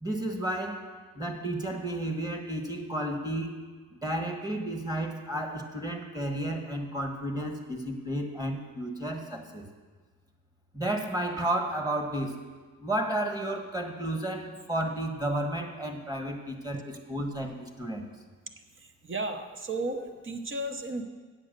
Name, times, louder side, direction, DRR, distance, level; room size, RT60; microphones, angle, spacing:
voice 1, 0.0-3.6 3.9-9.7 10.7-12.4 12.8-18.1, right 1 dB, 10° right, 4 dB, 1.4 m, -32 dB
voice 2, 19.0-21.0, right 2 dB, 35° right, 6 dB, 0.9 m, -33 dB
8.6 x 7.8 x 6.6 m, 1.4 s
cardioid pair, 85°, 34 cm